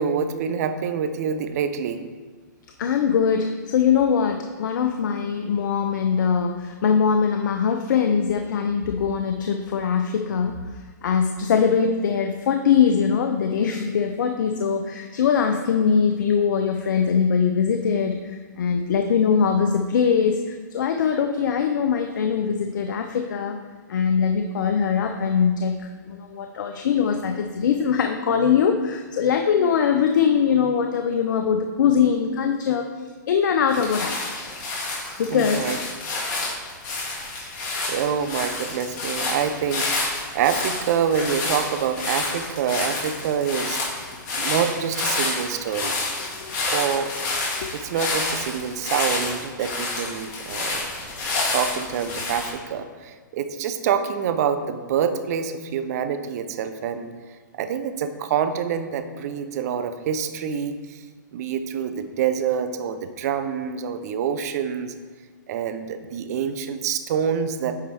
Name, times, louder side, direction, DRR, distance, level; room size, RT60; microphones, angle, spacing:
voice 1, 0.0-2.0 35.3-35.8 37.9-43.8 44.3-46.0 46.7-47.2 47.7-50.9 51.5-57.1 57.5-61.0 61.3-64.9 65.5-67.8, right 7 dB, 55° right, 10 dB, 0.6 m, -26 dB
voice 2, 2.8-10.5 11.0-23.6 23.9-32.8 33.3-34.2 35.2-35.6 46.3-46.6 47.5-47.7, left 7 dB, 70° left, 5 dB, 0.5 m, -22 dB
sound 1, 33.7-52.5, left 3 dB, 35° left, 2.2 m, -29 dB
9.2 x 4.6 x 3.4 m, 1.5 s
hypercardioid pair, 130°, 10 cm